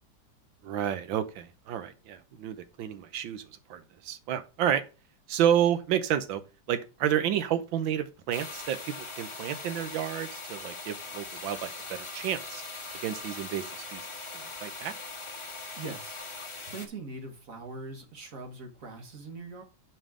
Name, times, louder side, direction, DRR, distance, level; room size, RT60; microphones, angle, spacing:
voice 1, 0.6-3.4 3.7-4.8 5.3-6.4 6.7-8.8 9.2-12.6 13.0-13.6 13.9-14.1 14.3-14.9, right 10 dB, 80° right, 1.5 m, -30 dB
sound 1, 8.3-16.9, left 3 dB, 25° left, 0.7 m, -41 dB
voice 2, 15.8-16.2 16.7-19.6, right 3 dB, 45° right, 1.7 m, -41 dB
5.5 x 5.5 x 4.8 m
omnidirectional pair, 2.1 m